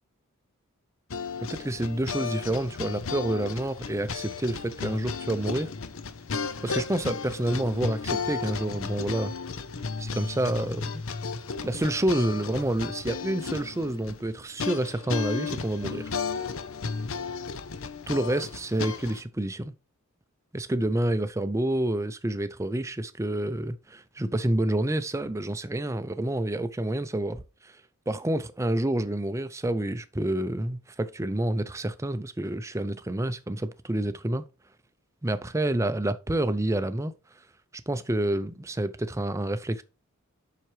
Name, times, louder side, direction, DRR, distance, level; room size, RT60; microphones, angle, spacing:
sound 1, 1.1-19.2, left 5 dB, 65° left, 0.7 m, -34 dB
voice 1, 1.4-5.7 6.6-9.3 10.0-11.0 11.6-16.1 18.1-19.7 20.5-27.8 28.1-34.4 35.2-37.1 37.9-39.8, right 1 dB, 15° right, 0.5 m, -28 dB
7.4 x 5.8 x 3.2 m
head